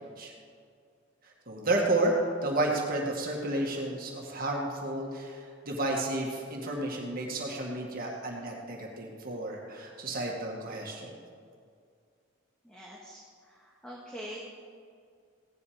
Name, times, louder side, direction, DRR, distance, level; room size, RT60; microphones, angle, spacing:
voice 1, 1.5-2.1 2.4-11.1, right 2 dB, 45° right, -1 dB, 2.0 m, -31 dB
voice 2, 12.6-14.4, equal, 5° left, -4 dB, 1.7 m, -44 dB
17.0 x 11.0 x 5.1 m, 2.3 s
head